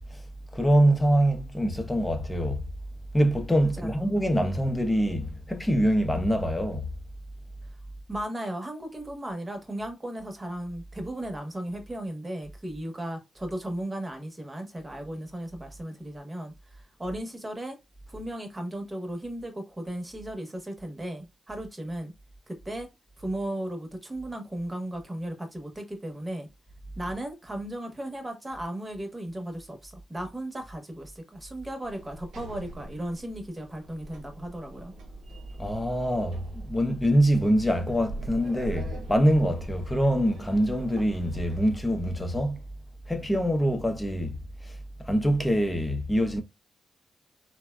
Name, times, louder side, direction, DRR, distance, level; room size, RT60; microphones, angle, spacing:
voice 1, 0.5-2.6 3.1-6.9 35.6-42.6 43.1-44.4 44.6-44.7 45.0-46.4, equal, 15° left, 0.7 m, -24 dB
voice 2, 8.1-17.8 18.1-22.1 22.5-22.9 23.2-26.5 27.0-34.9, right 1 dB, 25° right, 1.1 m, -36 dB
Sliding door, 31.8-42.0, right 2 dB, 85° right, 0.6 m, -43 dB
3.2 x 2.2 x 2.2 m
supercardioid pair, 55°, 0 cm